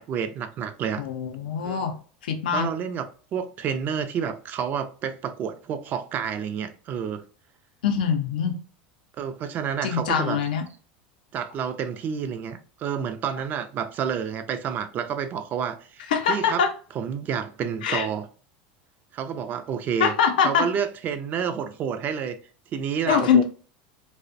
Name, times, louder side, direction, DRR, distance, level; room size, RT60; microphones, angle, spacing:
voice 1, 0.0-1.0 1.6-1.8 2.5-3.1 3.3-7.2 9.2-10.4 11.3-16.6 16.9-18.3 19.1-20.1 20.4-22.4 22.7-23.4, right 7 dB, 40° right, 0.4 m, -29 dB
voice 2, 1.0-1.9 2.2-2.7 7.8-8.6 9.8-10.6 16.1-16.7 17.8-18.1 20.0-20.7 23.1-23.4, left 7 dB, 85° left, 0.4 m, -23 dB
2.4 x 2.0 x 2.5 m
supercardioid pair, 105°, 5 cm